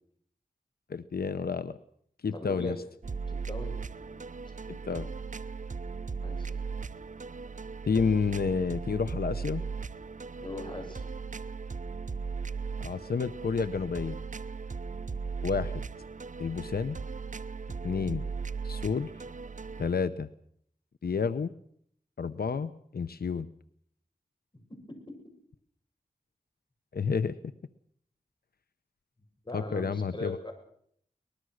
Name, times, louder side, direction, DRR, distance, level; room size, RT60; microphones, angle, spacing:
voice 1, 0.9-1.8 2.2-2.8 4.7-5.1 7.8-9.6 12.8-14.2 15.4-15.8 16.4-17.0 17.8-18.2 18.6-19.1 19.8-20.3 21.0-21.5 22.2-23.5 26.9-27.4 29.5-30.4, left 5 dB, 85° left, 13 dB, 0.8 m, -30 dB
voice 2, 2.3-2.8 3.3-4.2 6.2-6.6 10.4-11.0 24.7-25.0 29.4-30.5, left 2 dB, 30° left, 5 dB, 7.3 m, -40 dB
sound 1, 3.0-19.9, right 5 dB, 55° right, 0.8 m, -37 dB
23.0 x 20.5 x 6.4 m, 0.66 s
wide cardioid pair, 65°, 16 cm